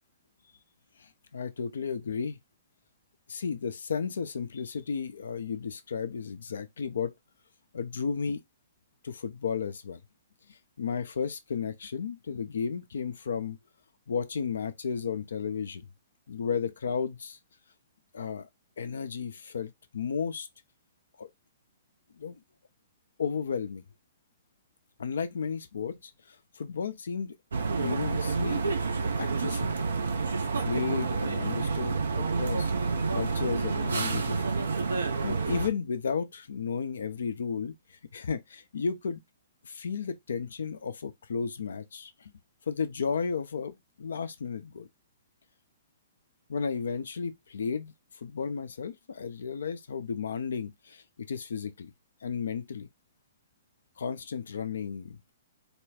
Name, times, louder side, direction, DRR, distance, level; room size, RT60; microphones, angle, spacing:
voice 1, 1.0-2.4 3.3-7.1 7.7-8.4 9.0-10.0 10.8-13.6 14.1-15.9 16.3-17.4 18.1-18.5 18.8-20.5 21.2-21.3 22.2-22.4 23.2-23.8 25.0-27.3 27.8-28.6 29.0-29.7 30.6-32.7 33.1-34.4 35.2-37.7 38.1-39.2 39.6-42.3 42.7-44.9 46.5-47.9 48.2-51.9 52.2-52.9 54.0-55.3, left 6 dB, 70° left, 0.6 m, -33 dB
sound 1, 27.5-35.7, right 4 dB, 75° right, 0.8 m, -29 dB
4.3 x 2.3 x 3.4 m
figure-of-eight pair, 120°, 0 cm